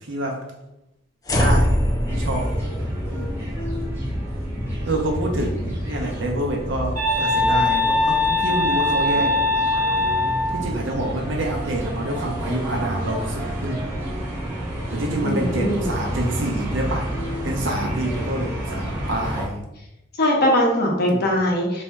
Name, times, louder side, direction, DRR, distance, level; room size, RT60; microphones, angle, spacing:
voice 1, 0.1-0.4 1.3-1.8 2.1-2.5 3.1-3.4 4.9-9.4 10.5-13.9 14.9-17.1 17.4-19.6 21.0-21.3, right 1 dB, 75° right, 1 dB, 0.7 m, -27 dB
sound 1, 1.2-7.6, equal, 20° left, 0.4 m, -26 dB
sound 2, 2.0-19.4, equal, 10° right, 0.9 m, -30 dB
sound 3, 7.0-10.6, left 2 dB, 40° right, 1.1 m, -21 dB
voice 2, 15.2-15.9 20.2-21.8, equal, 55° left, -2 dB, 0.9 m, -21 dB
4.3 x 2.7 x 2.2 m, 0.89 s
head